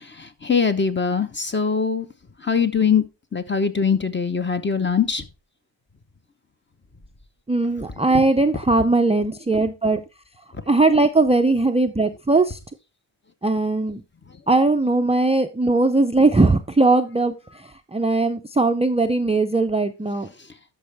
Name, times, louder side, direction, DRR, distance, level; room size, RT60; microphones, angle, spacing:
voice 1, 0.4-2.1 2.4-3.0 3.3-5.2, left 6 dB, 25° left, 9 dB, 1.0 m, -21 dB
voice 2, 7.5-10.0 10.7-12.6 13.4-14.0 14.5-17.3 17.9-20.3, right 3 dB, 15° right, 6 dB, 0.5 m, -19 dB
12.5 x 5.4 x 3.4 m, 0.28 s
wide cardioid pair, 100°, 47 cm